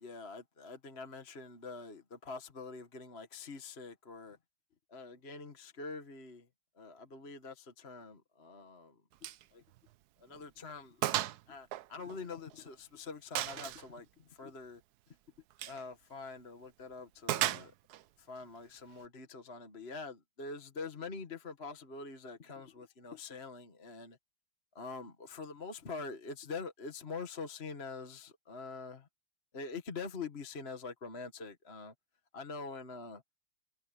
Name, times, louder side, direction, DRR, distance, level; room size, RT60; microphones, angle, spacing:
voice 1, 0.0-4.4 4.9-6.5 6.8-8.9 9.5-9.6 10.2-14.1 14.4-14.8 15.7-17.7 18.2-24.2 24.8-29.1 29.5-31.9 32.3-33.2, left 4 dB, 35° left, 1.7 m, -45 dB
Gunshot gunfire, 9.2-9.4 9.8-9.9 10.4-10.5 11.0-11.4 11.7-12.7 13.4-13.9 15.5-15.8 17.3-18.0, right 13 dB, 70° right, 1.0 m, -34 dB
omnidirectional pair, 2.2 m